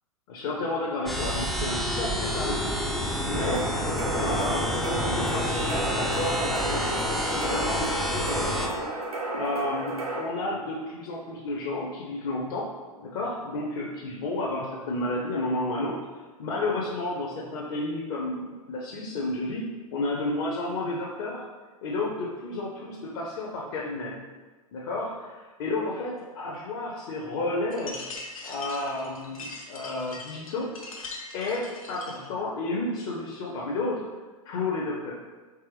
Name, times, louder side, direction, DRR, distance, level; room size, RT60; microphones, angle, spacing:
voice 1, 0.3-2.7 3.2-3.7 4.1-8.9 9.3-12.7 13.0-16.0 16.4-21.4 21.8-24.2 24.7-28.0 28.4-30.7 31.3-34.0 34.4-35.1, left 2 dB, 40° left, -3 dB, 0.6 m, -31 dB
sound 1, 1.1-8.7, equal, ahead, 0.4 m, -28 dB
sound 2, 3.3-10.2, right 2 dB, 80° right, 1.0 m, -33 dB
sound 3, 27.7-32.3, left 3 dB, 70° left, 0.8 m, -41 dB
4.6 x 3.1 x 3.2 m, 1.3 s
figure-of-eight pair, 100°, 19 cm